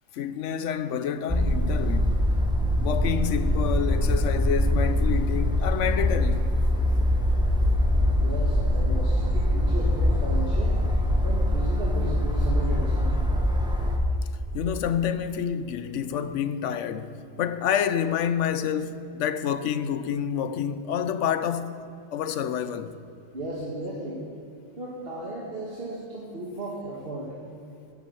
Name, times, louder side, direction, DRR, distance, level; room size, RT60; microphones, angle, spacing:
voice 1, 0.1-2.3 2.8-6.5 14.5-21.7 22.1-23.0, left 8 dB, 70° left, 1.0 m, -28 dB
sound 1, 1.3-14.0, left 1 dB, 5° right, 1.0 m, -23 dB
voice 2, 8.2-10.8 11.2-13.2 23.3-24.3 24.8-27.3, right 1 dB, 50° right, 1.8 m, -35 dB
11.5 x 9.7 x 6.8 m
omnidirectional pair, 1.3 m